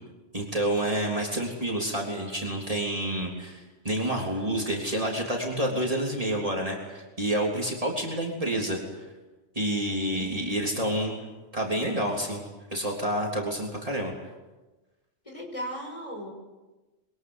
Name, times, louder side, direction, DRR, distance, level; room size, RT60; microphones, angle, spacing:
voice 1, 0.3-8.8 9.6-11.2 11.5-12.4 12.7-14.1, right 1 dB, 30° right, -1 dB, 3.6 m, -28 dB
voice 2, 10.1-10.7 15.3-16.3, equal, 25° left, 2 dB, 6.0 m, -38 dB
26.0 x 23.0 x 8.2 m, 1.2 s
omnidirectional pair, 1.2 m